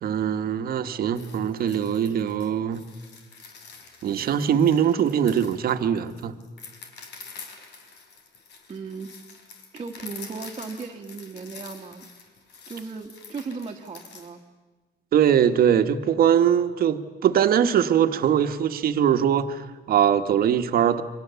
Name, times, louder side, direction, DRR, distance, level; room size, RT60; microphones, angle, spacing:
voice 1, 0.0-2.8 4.0-6.3 15.1-21.0, right 9 dB, 55° right, 9 dB, 1.4 m, -22 dB
sound 1, 1.1-14.3, left 5 dB, 75° left, 3.9 m, -46 dB
voice 2, 8.7-9.1 9.7-12.1 12.7-14.4, right 4 dB, 30° right, 0 dB, 1.6 m, -36 dB
28.5 x 24.5 x 7.0 m, 1.3 s
cardioid pair, 145°, 18 cm